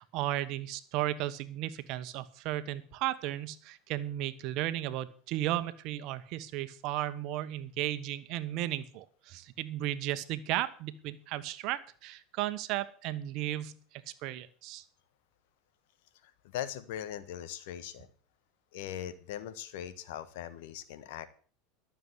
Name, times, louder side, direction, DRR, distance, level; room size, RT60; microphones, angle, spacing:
voice 1, 0.0-13.8 14.2-14.8, right 14 dB, 60° right, 13 dB, 1.2 m, -35 dB
voice 2, 16.5-18.1 18.7-21.3, left 10 dB, 70° left, 13 dB, 1.4 m, -40 dB
12.5 x 7.1 x 8.0 m, 0.43 s
hypercardioid pair, 90°, 0 cm